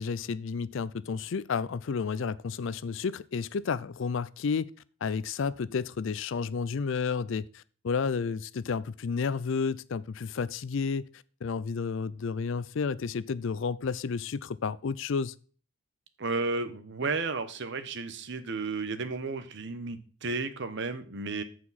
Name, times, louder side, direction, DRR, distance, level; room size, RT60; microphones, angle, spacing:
voice 1, 0.0-4.7 5.0-11.1 11.4-15.3, left 5 dB, 60° left, 0.4 m, -31 dB
voice 2, 16.2-21.4, right 3 dB, 55° right, 0.9 m, -33 dB
14.0 x 4.8 x 4.1 m
head